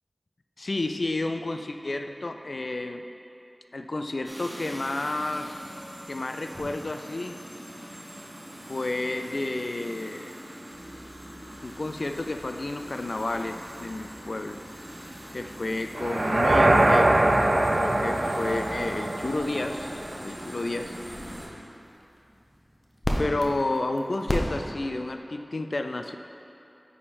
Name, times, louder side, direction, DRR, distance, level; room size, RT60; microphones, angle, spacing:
voice 1, 0.6-3.0 3.7-5.6 6.1-7.4 8.7-10.4 11.6-14.6 15.3-17.2 17.7-20.9 23.2-26.2, left 2 dB, 75° left, 6 dB, 0.3 m, -31 dB
sound 1, 4.2-21.5, equal, 45° right, 1.3 m, -42 dB
sound 2, 10.7-25.1, equal, 35° left, 0.8 m, -39 dB
sound 3, 16.0-20.1, right 1 dB, 85° right, 0.4 m, -22 dB
9.5 x 3.6 x 4.2 m, 2.9 s
wide cardioid pair, 40°, 0 cm